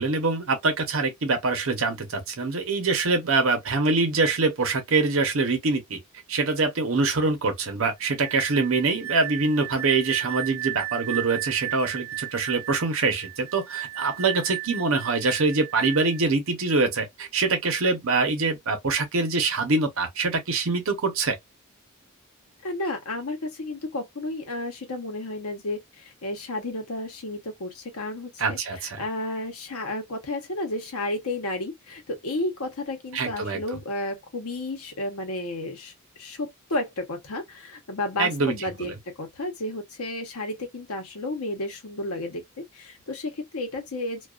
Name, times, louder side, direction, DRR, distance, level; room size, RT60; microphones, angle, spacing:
voice 1, 0.0-6.0 6.3-21.4 28.4-29.0 33.1-33.6 38.2-38.5 38.8-38.9, right 3 dB, 65° right, 0.7 m, -24 dB
sound 1, 8.0-16.3, right 16 dB, 40° left, 0.6 m, -35 dB
voice 2, 22.6-44.3, left 2 dB, 80° left, 0.9 m, -32 dB
2.3 x 2.3 x 2.3 m
head